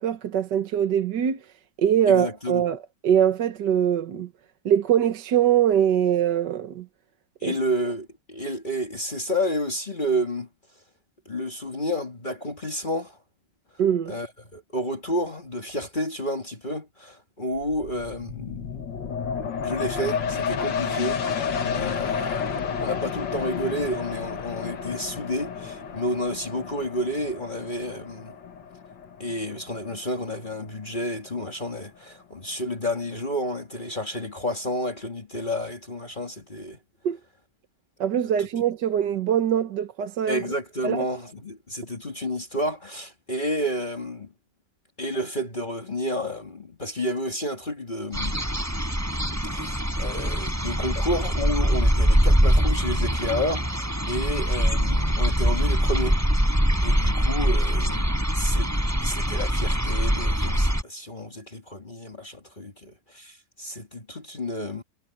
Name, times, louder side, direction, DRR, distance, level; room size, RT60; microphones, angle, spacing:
voice 1, 0.0-1.4 1.8-4.3 4.7-6.9 7.4-7.6 13.8-14.2 37.0-37.2 38.0-40.4 40.8-41.0, right 9 dB, 65° right, 1.8 m, -23 dB
voice 2, 2.1-2.6 7.4-10.5 11.3-13.2 14.1-18.8 19.6-28.4 29.2-36.8 38.4-38.5 40.3-44.3 45.0-48.4 49.4-56.2 56.8-58.7 59.0-64.8, equal, 25° left, 2.1 m, -30 dB
sound 1, 17.5-30.8 31.3-31.4, left 6 dB, 70° left, 2.1 m, -31 dB
sound 2, 48.1-60.8, equal, 10° right, 6.7 m, -23 dB
omnidirectional pair, 2.1 m